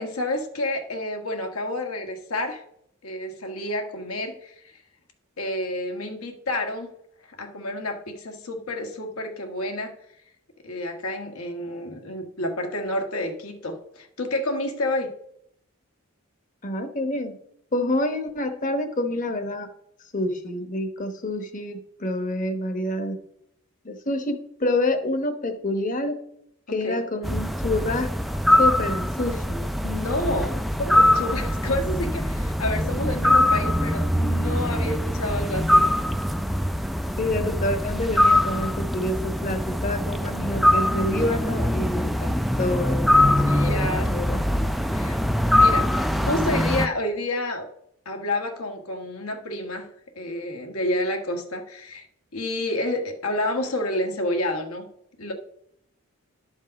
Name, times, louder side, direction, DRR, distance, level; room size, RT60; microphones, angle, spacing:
voice 1, 0.0-2.6 3.0-4.5 5.4-6.9 7.4-9.9 10.6-15.1 26.7-27.0 29.8-35.8 43.4-44.1 44.9-45.2 45.5-47.7 48.0-49.9 50.2-52.1 52.3-54.9 55.2-55.3, left 1 dB, 80° left, 4 dB, 1.5 m, -29 dB
voice 2, 16.6-17.4 17.7-19.7 20.1-23.2 23.8-26.2 26.7-28.1 28.6-29.6 37.2-44.4 45.7-46.0, left 1 dB, 35° left, 8 dB, 1.0 m, -28 dB
sound 1, 27.2-46.9, left 1 dB, ahead, 0.3 m, -22 dB
11.5 x 5.4 x 5.2 m, 0.73 s
head